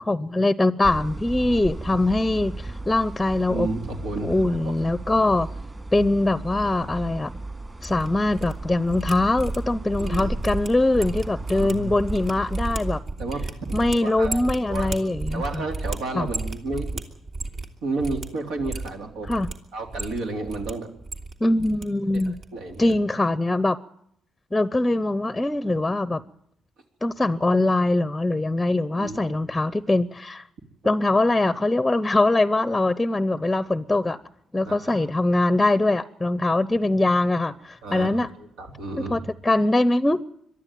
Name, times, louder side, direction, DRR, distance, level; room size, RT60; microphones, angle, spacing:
voice 1, 0.1-3.7 4.2-5.5 5.9-7.3 7.8-13.0 13.7-15.6 16.1-16.3 19.3-19.5 21.4-22.4 22.8-23.8 24.5-26.2 27.0-30.5 30.8-34.2 34.5-38.3 39.1-40.2, left 2 dB, 10° left, 15 dB, 0.7 m, -22 dB
sound 1, 0.8-13.0, right 2 dB, 25° right, 2.8 m, -35 dB
voice 2, 3.5-4.6 10.0-10.3 11.0-11.1 11.5-11.9 13.2-13.8 14.0-14.4 14.7-17.0 17.8-19.3 19.7-20.9 22.1-22.9 29.0-29.4 34.6-35.1 37.8-39.3, right 3 dB, 85° right, 3 dB, 3.6 m, -32 dB
sound 2, 7.6-8.5 8.8-17.7 18.0-18.3 18.6-19.5 19.9-20.7 21.0-21.8 22.1-22.4 22.7-22.9, right 2 dB, 50° right, 2.6 m, -33 dB
23.0 x 12.5 x 9.1 m, 0.73 s
cardioid pair, 90°, 0 cm